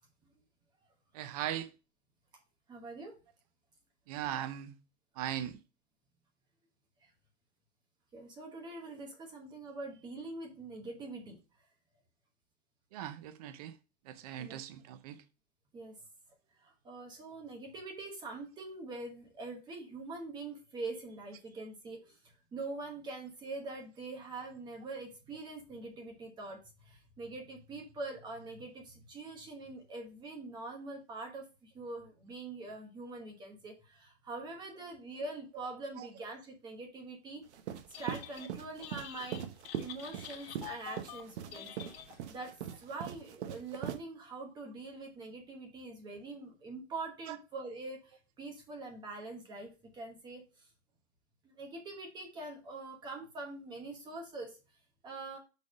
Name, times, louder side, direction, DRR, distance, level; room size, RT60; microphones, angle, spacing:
voice 1, 1.1-1.7 4.1-4.7 5.2-5.6 12.9-13.8 14.1-15.2 36.0-36.1 47.3-47.4, right 11 dB, 35° right, 0.5 m, -39 dB
voice 2, 2.7-3.1 7.0-7.1 8.1-11.4 14.3-14.6 15.7-16.0 16.6-37.4 38.0-39.5 39.8-41.9 42.3-50.4 51.6-54.6 55.0-55.4, right 3 dB, 15° right, 1.1 m, -44 dB
sound 1, 37.5-44.0, right 10 dB, 80° right, 0.9 m, -41 dB
Telephone, 37.8-38.5 38.8-42.5, left 11 dB, 60° left, 1.6 m, -48 dB
6.4 x 3.5 x 4.8 m
supercardioid pair, 170°, 34 cm